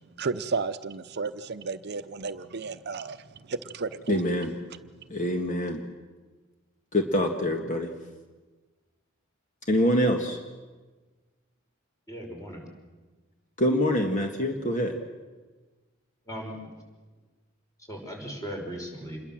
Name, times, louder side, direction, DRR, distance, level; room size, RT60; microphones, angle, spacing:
voice 1, 0.2-4.2, right 4 dB, 55° right, 11 dB, 0.8 m, -33 dB
voice 2, 4.1-4.5 5.1-5.8 6.9-7.9 9.7-10.4 13.6-15.0, equal, 40° left, 4 dB, 1.8 m, -25 dB
voice 3, 12.1-12.6 16.3-16.6 17.9-19.2, equal, 15° left, 1 dB, 5.9 m, -37 dB
27.0 x 21.5 x 7.5 m, 1.3 s
head